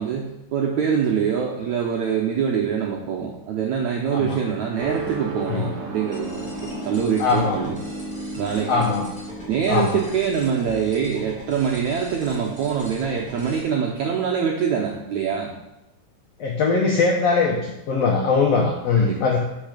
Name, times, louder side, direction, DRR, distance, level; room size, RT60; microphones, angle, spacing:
voice 1, 0.0-7.8 8.4-8.9 9.5-15.5 19.0-19.2, right 7 dB, 75° right, 0 dB, 1.7 m, -24 dB
sound 1, 4.8-11.1, right 1 dB, 35° right, 3.3 m, -34 dB
sound 2, 6.1-13.6, equal, ahead, 2.6 m, -42 dB
voice 2, 7.2-7.6 8.7-9.0 9.7-10.0 16.4-19.4, left 4 dB, 85° left, -1 dB, 1.4 m, -21 dB
12.0 x 5.8 x 5.1 m, 0.93 s
omnidirectional pair, 4.5 m